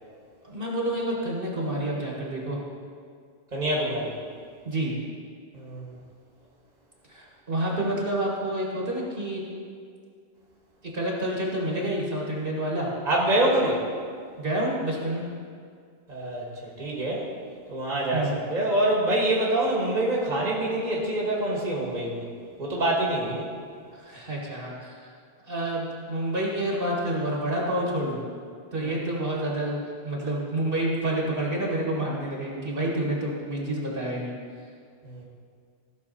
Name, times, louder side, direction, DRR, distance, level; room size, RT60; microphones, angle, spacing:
voice 1, 0.4-2.6 4.7-5.0 7.1-9.4 10.9-12.9 14.4-15.2 18.1-18.3 24.0-25.1 25.5-28.2 28.7-34.3, right 1 dB, 55° right, -3 dB, 1.9 m, -28 dB
voice 2, 3.5-4.1 5.5-6.0 13.1-13.8 16.1-17.2 17.7-22.2 22.6-23.4 28.8-29.0 35.0-35.2, right 1 dB, 40° right, -3 dB, 1.8 m, -26 dB
16.0 x 6.4 x 4.2 m, 2.2 s
omnidirectional pair, 1.1 m